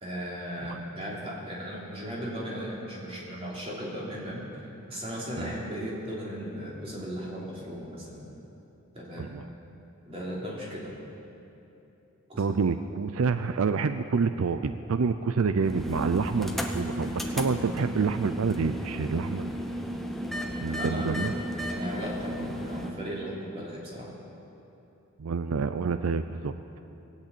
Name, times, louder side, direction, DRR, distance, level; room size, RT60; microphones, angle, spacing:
voice 1, 0.0-8.4 8.9-9.3 10.0-11.0 12.3-12.5 20.7-21.2 21.7-24.1, equal, 30° right, -5 dB, 3.2 m, -37 dB
voice 2, 9.2-9.5 12.4-19.6 20.6-21.3 25.2-26.5, right 5 dB, 85° right, 10 dB, 0.5 m, -28 dB
sound 1, 15.6-22.9, equal, ahead, 0.8 m, -34 dB
19.0 x 8.4 x 8.5 m, 2.9 s
head